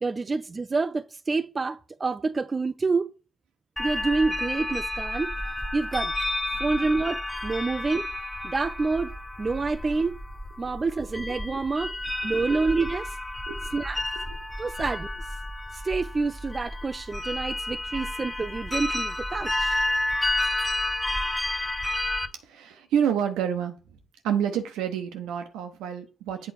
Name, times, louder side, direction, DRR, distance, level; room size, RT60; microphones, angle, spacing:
voice 1, 0.0-3.1 3.8-5.3 5.7-6.1 6.6-8.1 8.4-9.1 9.4-10.2 10.6-11.9 12.2-13.2 13.7-14.0 14.6-15.1 15.7-19.8, right 3 dB, 35° right, 0.4 m, -27 dB
sound 1, 3.8-22.3, left 1 dB, 15° left, 0.8 m, -31 dB
voice 2, 22.4-23.7 24.2-26.5, right 8 dB, 80° right, 1.0 m, -28 dB
8.1 x 3.8 x 4.3 m
hypercardioid pair, 45°, 0 cm